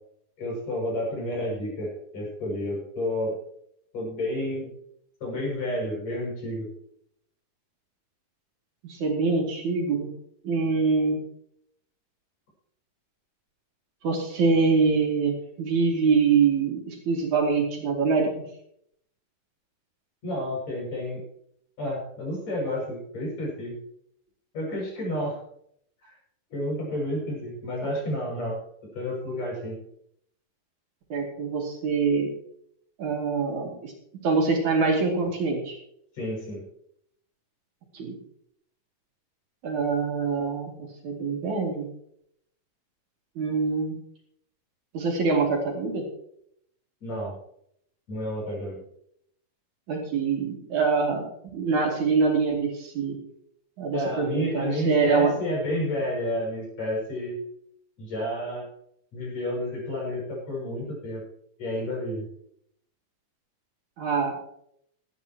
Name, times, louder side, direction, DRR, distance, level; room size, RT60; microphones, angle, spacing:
voice 1, 0.4-3.3 3.9-4.7 5.2-6.7 20.2-21.2 21.8-23.8 24.5-25.4 26.0-26.1 26.5-28.6 28.9-29.8 36.1-36.6 47.0-47.4 48.1-48.8 53.9-57.4 58.0-58.7 59.1-61.2 61.6-62.3, left 1 dB, 55° left, -3 dB, 8.0 m, -30 dB
voice 2, 8.8-10.1 10.4-11.2 14.0-18.3 31.1-32.3 33.0-33.9 34.2-35.8 37.9-38.2 39.6-40.7 41.0-41.9 43.4-44.0 44.9-46.1 49.9-51.2 51.5-53.2 53.8-55.3 64.0-64.4, right 4 dB, 65° right, 0 dB, 3.7 m, -24 dB
17.0 x 12.5 x 3.0 m, 0.69 s
omnidirectional pair, 3.8 m